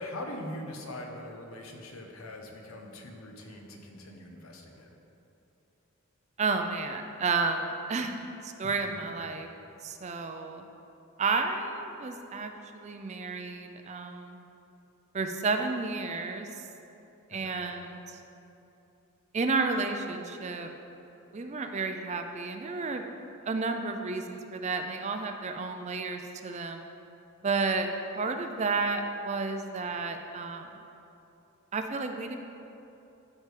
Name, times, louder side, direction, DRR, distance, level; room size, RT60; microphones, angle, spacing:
voice 1, 0.0-4.9 8.6-9.1 17.3-17.6, left 1 dB, 70° left, 2 dB, 0.9 m, -42 dB
voice 2, 6.4-9.5 9.8-10.7 11.2-14.4 15.1-16.6 17.3-18.2 19.3-20.7 21.3-23.1 23.4-26.8 27.4-27.9 28.1-30.7 31.7-32.4, right 4 dB, 30° right, 6 dB, 0.4 m, -31 dB
12.5 x 4.7 x 3.3 m, 2.9 s
head